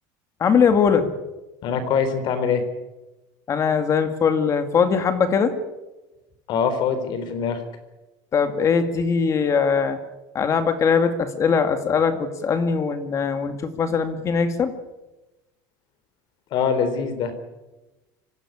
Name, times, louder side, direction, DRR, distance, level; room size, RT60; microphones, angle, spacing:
voice 1, 0.4-1.1 3.5-5.5 8.3-10.0 10.3-14.7, left 6 dB, 30° left, 8 dB, 2.2 m, -21 dB
voice 2, 1.6-2.6 6.5-7.6 16.5-17.3, left 6 dB, 45° left, 10 dB, 3.8 m, -23 dB
24.5 x 16.0 x 8.7 m, 1.1 s
cardioid pair, 150°, 10 cm